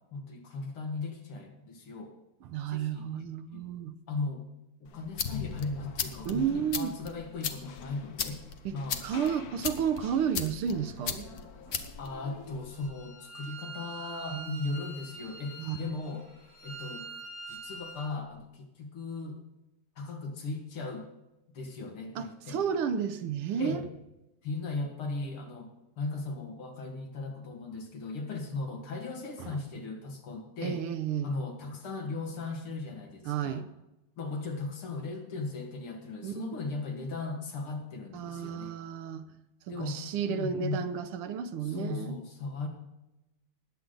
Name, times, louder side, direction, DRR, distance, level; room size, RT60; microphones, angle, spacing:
voice 1, 0.1-2.1 2.7-3.0 3.5-3.7 4.1-4.4 4.8-8.4 8.7-9.0 12.0-16.2 16.6-17.1 17.5-19.4 20.0-21.1 21.5-22.8 23.6-23.8 24.4-30.8 31.2-33.6 34.2-38.7 39.7-40.0 40.3-40.8 41.6-42.7, left 3 dB, 80° left, 3 dB, 2.9 m, -37 dB
voice 2, 2.4-3.9 6.2-6.9 8.6-11.3 11.7-11.8 14.3-14.5 15.6-15.9 22.1-23.9 29.4-29.6 30.6-31.3 33.2-33.7 36.2-36.6 38.1-39.3 39.7-42.2, right 8 dB, 90° right, 9 dB, 1.7 m, -32 dB
sound 1, 4.8-12.9, left 7 dB, 50° left, 1.3 m, -38 dB
Bowed string instrument, 12.7-18.1, right 3 dB, 15° left, 4.9 m, -45 dB
20.0 x 8.3 x 3.9 m, 0.95 s
omnidirectional pair, 2.4 m